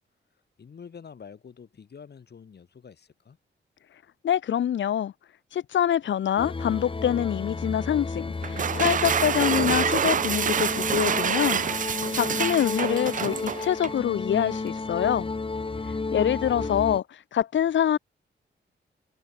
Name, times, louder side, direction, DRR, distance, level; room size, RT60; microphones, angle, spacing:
voice 1, 0.6-3.4, left 6 dB, 60° left, 5.3 m, -47 dB
voice 2, 4.2-5.1 5.5-11.6 12.1-15.3 16.1-17.0 17.3-18.0, left 10 dB, 75° left, 0.8 m, -25 dB
sound 1, 6.4-17.0, left 3 dB, 25° left, 2.1 m, -32 dB
sound 2, 8.4-14.0, right 8 dB, 45° right, 0.4 m, -27 dB
wide cardioid pair, 110°, 20 cm